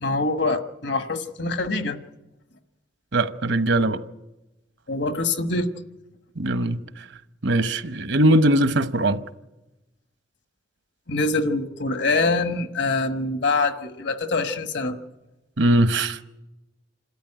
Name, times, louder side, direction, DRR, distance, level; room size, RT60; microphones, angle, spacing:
voice 1, 0.0-2.0 4.9-5.7 11.1-15.0, left 3 dB, 70° left, 1.4 m, -24 dB
voice 2, 3.1-4.0 6.4-6.8 7.4-9.2 15.6-16.2, right 1 dB, 70° right, 1.0 m, -20 dB
27.5 x 13.0 x 10.0 m
head